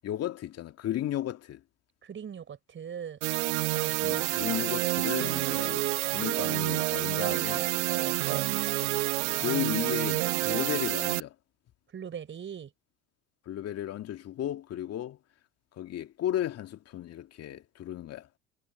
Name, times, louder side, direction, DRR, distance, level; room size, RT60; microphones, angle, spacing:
voice 1, 0.0-1.6 4.0-5.9 6.1-7.7 9.3-11.3 13.5-15.2 15.7-18.3, left 12 dB, 40° left, 2.4 m, -34 dB
voice 2, 2.0-3.2 3.7-4.0 7.9-8.5 11.9-12.7, right 8 dB, 30° right, 5.5 m, -40 dB
sound 1, 3.2-11.2, right 23 dB, 60° right, 0.5 m, -28 dB
figure-of-eight pair, 75°, 38 cm